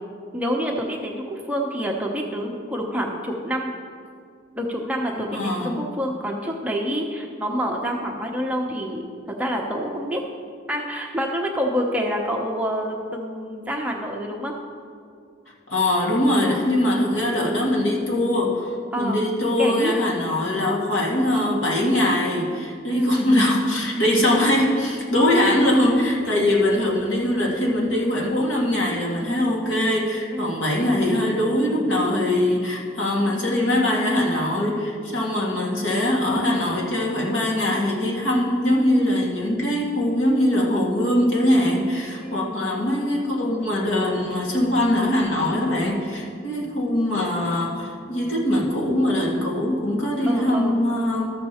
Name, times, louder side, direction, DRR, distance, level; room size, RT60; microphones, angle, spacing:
voice 1, 0.3-3.7 4.5-10.2 10.7-14.5 16.4-16.6 18.9-19.2 19.6-19.9 22.9-23.2 26.3-26.5 30.3-30.6 35.4-35.5 42.2-42.6 45.9-46.1 50.3-50.8, equal, 10° right, 0 dB, 0.8 m, -27 dB
voice 2, 5.3-5.8 15.7-51.3, left 1 dB, 80° left, -3 dB, 1.9 m, -22 dB
13.0 x 6.8 x 4.3 m, 2.2 s
head